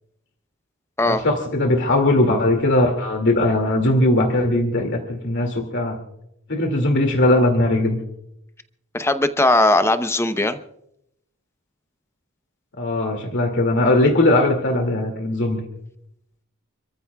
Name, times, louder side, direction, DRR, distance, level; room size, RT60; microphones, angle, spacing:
voice 1, 1.1-6.0 6.5-8.0 12.8-15.6, left 1 dB, 55° left, 3 dB, 2.3 m, -19 dB
voice 2, 8.9-10.6, left 2 dB, 10° left, 10 dB, 0.7 m, -19 dB
30.0 x 14.5 x 2.3 m, 0.78 s
head